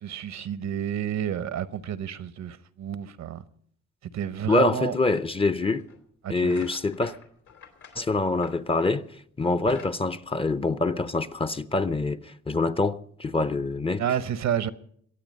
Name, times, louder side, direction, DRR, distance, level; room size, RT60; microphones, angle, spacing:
voice 1, 0.0-3.4 4.1-5.0 6.2-6.5 14.0-14.7, right 9 dB, 65° right, 0.8 m, -30 dB
voice 2, 4.5-5.9 6.3-7.1 8.0-14.0, left 3 dB, 20° left, 0.6 m, -25 dB
Int-movingwoodboards, 5.8-6.0 6.3-9.1 9.5-11.1, left 6 dB, 75° left, 2.9 m, -49 dB
23.0 x 8.8 x 5.3 m
cardioid pair, 90°, 30 cm